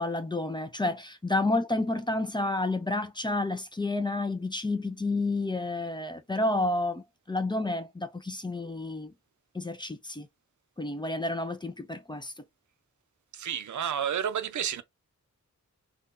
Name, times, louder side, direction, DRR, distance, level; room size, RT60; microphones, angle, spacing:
voice 1, 0.0-9.1 9.5-10.3 10.8-12.3, left 2 dB, 15° left, 0.4 m, -30 dB
voice 2, 13.3-14.8, right 9 dB, 75° right, 0.5 m, -30 dB
3.6 x 2.3 x 2.4 m
wide cardioid pair, 155°, 30 cm